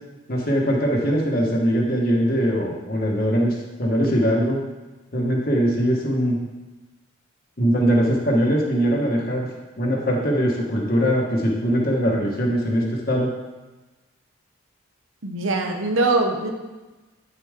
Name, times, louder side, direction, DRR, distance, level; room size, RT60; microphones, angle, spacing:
voice 1, 0.3-4.6 5.1-6.4 7.6-9.5 9.8-13.3, equal, 45° left, -1 dB, 1.5 m, -21 dB
voice 2, 15.2-16.5, right 2 dB, 70° right, 3 dB, 1.0 m, -22 dB
9.3 x 7.0 x 3.7 m, 1.2 s
head